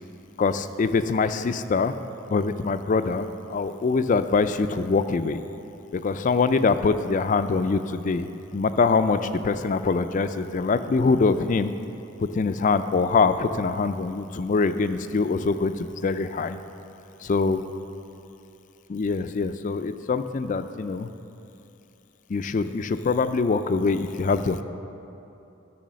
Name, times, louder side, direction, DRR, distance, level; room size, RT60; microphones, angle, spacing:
voice 1, 0.4-1.9 2.3-5.4 5.9-8.3 8.5-11.7 12.3-16.6 17.2-17.6 18.9-21.1 22.3-24.6, left 4 dB, 40° left, 11 dB, 0.4 m, -24 dB
12.5 x 6.3 x 6.3 m, 2.8 s
head